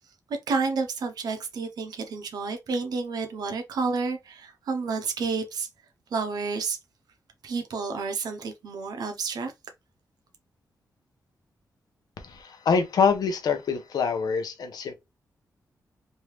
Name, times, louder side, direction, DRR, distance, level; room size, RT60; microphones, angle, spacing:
voice 1, 0.5-5.7 6.1-6.8 7.4-9.5, right 4 dB, 80° right, 0.6 m, -30 dB
voice 2, 12.2-14.9, left 5 dB, 75° left, 0.7 m, -25 dB
3.2 x 2.7 x 3.0 m
wide cardioid pair, 110°, 7 cm